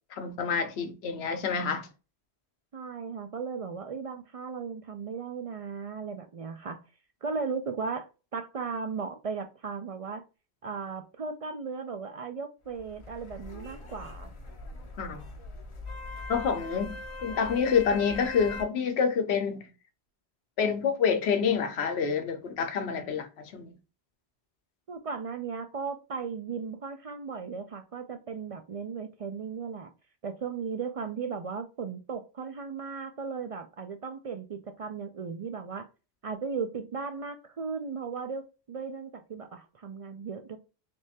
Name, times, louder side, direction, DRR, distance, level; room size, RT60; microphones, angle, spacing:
voice 1, 0.1-1.9 15.0-15.2 16.3-19.7 20.6-23.7, left 6 dB, 80° left, 1.0 m, -28 dB
voice 2, 2.7-6.8 7.2-10.2 10.6-14.3 24.9-29.9 30.2-35.9 36.2-40.6, right 5 dB, 60° right, 0.3 m, -36 dB
sound 1, 12.7-18.6, left 3 dB, 35° left, 0.5 m, -41 dB
3.4 x 3.2 x 2.8 m
omnidirectional pair, 1.1 m